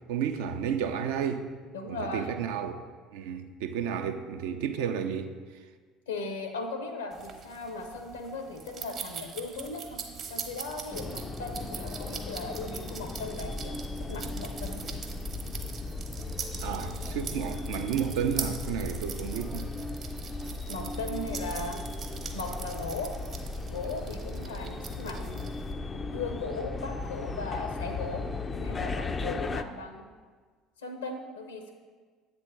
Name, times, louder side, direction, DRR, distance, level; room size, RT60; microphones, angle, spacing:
voice 1, 0.1-1.5 1.9-2.8 3.1-5.3 16.6-19.7, right 8 dB, 65° right, 0.4 m, -32 dB
voice 2, 1.7-2.4 6.1-10.0 10.3-14.8 20.7-21.8 22.3-23.1 23.6-25.5 25.9-28.3 28.6-30.1 30.8-31.7, left 3 dB, 75° left, 0.7 m, -37 dB
sound 1, 7.1-25.7, right 6 dB, 45° right, 0.9 m, -43 dB
sound 2, 9.6-25.9, right 2 dB, 20° right, 0.6 m, -44 dB
sound 3, 10.9-29.6, left 4 dB, 25° left, 0.3 m, -37 dB
8.1 x 3.5 x 5.7 m
figure-of-eight pair, 60°, 0 cm